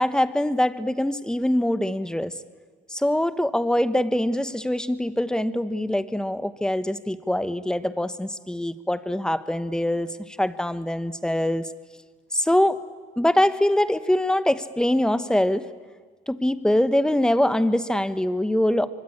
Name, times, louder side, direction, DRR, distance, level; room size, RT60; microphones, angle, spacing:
voice 1, 0.0-2.3 2.9-11.6 12.3-12.8 13.2-15.7 16.3-18.9, left 1 dB, 5° left, 12 dB, 1.2 m, -23 dB
25.0 x 24.5 x 8.8 m, 1.5 s
cardioid pair, 110°, 17 cm